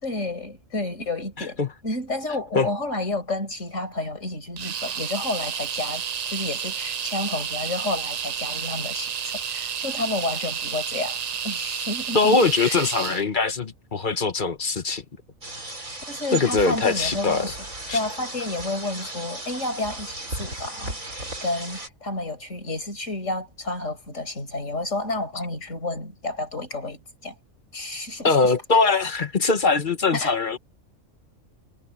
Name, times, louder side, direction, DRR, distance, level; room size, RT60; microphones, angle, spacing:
voice 1, 0.0-12.9 16.1-17.6 17.9-27.4 27.7-28.5 30.1-30.4, left 2 dB, 65° left, 5.5 m, -31 dB
sound 1, 4.6-13.2, right 8 dB, 55° right, 0.4 m, -31 dB
voice 2, 12.1-15.0 16.3-17.5 17.9-18.0 28.2-30.6, left 4 dB, 40° left, 1.3 m, -22 dB
sound 2, 15.4-21.9, right 2 dB, 80° right, 7.3 m, -36 dB
omnidirectional pair, 1.4 m